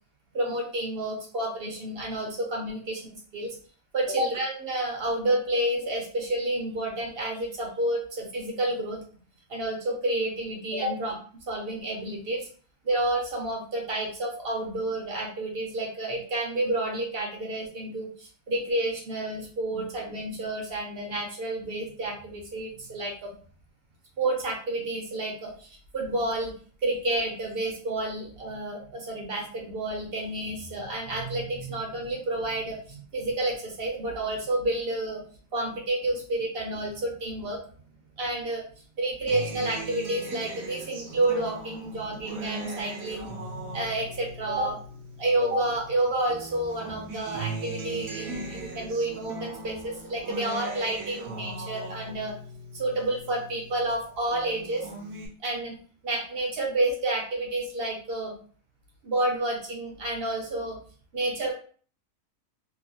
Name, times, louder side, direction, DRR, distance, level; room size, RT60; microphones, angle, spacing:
voice 1, 0.3-3.6 3.9-9.0 9.5-11.1 11.5-12.5 12.8-23.3 24.2-26.5 26.8-35.2 35.5-37.6 38.2-38.6 39.0-44.8 45.2-52.3 52.7-54.9 55.4-55.8 56.0-58.4 59.0-60.8 61.1-61.5, right 1 dB, 50° right, 0 dB, 0.8 m, -30 dB
Acoustic guitar, 39.3-45.9 46.3-53.9 54.3-55.3, right 2 dB, 80° right, 1.1 m, -39 dB
2.8 x 2.7 x 2.6 m, 0.43 s
omnidirectional pair, 1.5 m